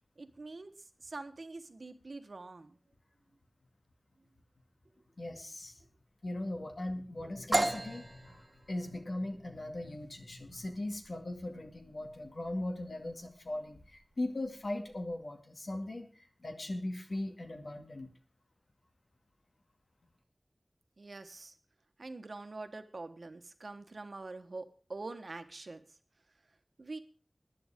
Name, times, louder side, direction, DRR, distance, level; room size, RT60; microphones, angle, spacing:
voice 1, 0.2-2.8 21.0-21.6 22.0-26.0 26.8-27.0, right 3 dB, 85° right, 8 dB, 1.2 m, -45 dB
voice 2, 5.2-5.8 6.2-18.1, left 1 dB, 80° left, 4 dB, 2.2 m, -39 dB
sound 1, 7.5-15.1, right 1 dB, 40° right, 1.4 m, -38 dB
22.0 x 10.5 x 3.6 m, 0.40 s
wide cardioid pair, 60°, 0 cm